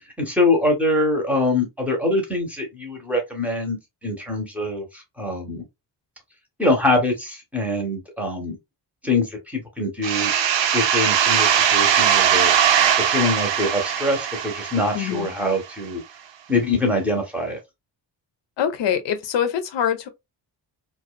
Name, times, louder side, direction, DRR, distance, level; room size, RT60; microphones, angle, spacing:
voice 1, 0.2-5.6 6.6-8.6 9.0-10.3 10.7-12.5 13.0-16.0 16.5-17.6, left 2 dB, 5° right, 0.7 m, -24 dB
sound 1, 10.0-15.5, right 9 dB, 80° right, 0.6 m, -20 dB
voice 2, 14.9-15.3 18.6-20.1, left 9 dB, 80° left, 0.6 m, -24 dB
2.5 x 2.3 x 2.4 m
wide cardioid pair, 155°, 43 cm